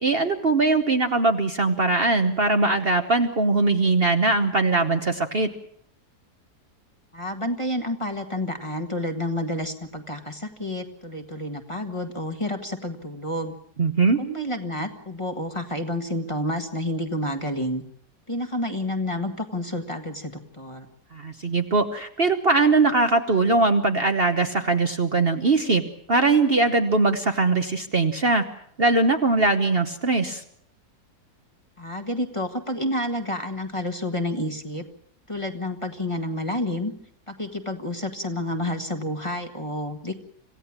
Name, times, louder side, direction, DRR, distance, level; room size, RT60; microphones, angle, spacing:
voice 1, 0.0-5.5 13.8-14.2 21.1-25.8 26.1-28.4 28.8-30.4, right 3 dB, 40° right, 6 dB, 1.2 m, -21 dB
voice 2, 7.1-13.6 14.2-17.8 18.3-20.9 31.8-34.8 35.3-36.9 37.3-40.2, left 1 dB, 20° left, 5 dB, 1.6 m, -29 dB
26.5 x 16.0 x 7.3 m, 0.66 s
omnidirectional pair, 1.7 m